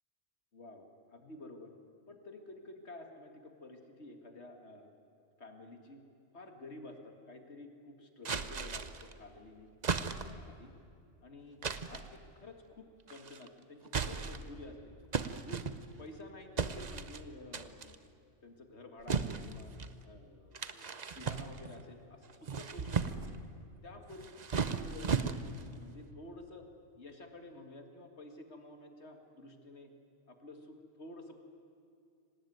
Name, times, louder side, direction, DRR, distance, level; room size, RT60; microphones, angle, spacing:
voice 1, 0.5-1.7 2.1-4.9 5.4-6.0 6.3-9.7 10.1-10.7 11.2-14.9 15.3-15.6 16.0-18.0 18.4-19.7 20.0-23.3 23.8-26.7 27.0-29.9 30.3-31.4, left 2 dB, 65° left, 5 dB, 2.2 m, -51 dB
sound 1, 8.2-9.1 9.8-10.5 11.6-12.1 13.1-13.5 13.9-14.6 15.1-16.1 16.6-17.2 17.5-18.0 19.1-19.9 20.5-21.8 22.3-23.4 24.1-25.7, right 5 dB, 40° right, 0.9 m, -36 dB
25.5 x 18.5 x 9.3 m, 2.4 s
omnidirectional pair, 1.2 m